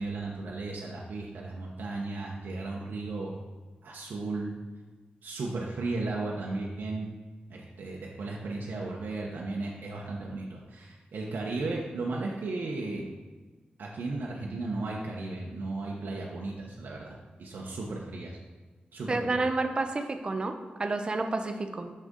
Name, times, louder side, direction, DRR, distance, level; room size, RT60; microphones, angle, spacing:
voice 1, 0.0-3.4 3.8-4.5 5.2-7.1 7.5-13.1 13.8-18.4 18.9-19.4, right 3 dB, 85° right, -2 dB, 0.9 m, -35 dB
voice 2, 19.1-21.9, right 3 dB, 30° right, 6 dB, 0.6 m, -30 dB
6.5 x 6.4 x 3.7 m, 1.3 s
wide cardioid pair, 165°, 3 cm